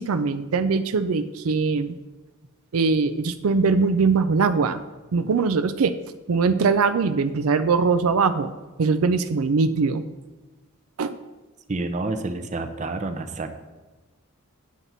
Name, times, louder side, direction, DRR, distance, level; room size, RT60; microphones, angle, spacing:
voice 1, 0.0-2.0 2.7-4.8 5.1-6.0 6.3-8.5 8.8-10.0 11.0-11.2, right 4 dB, 75° right, 10 dB, 0.5 m, -21 dB
voice 2, 11.7-13.5, right 2 dB, 35° right, 7 dB, 0.6 m, -29 dB
9.5 x 7.4 x 4.0 m, 1.2 s
head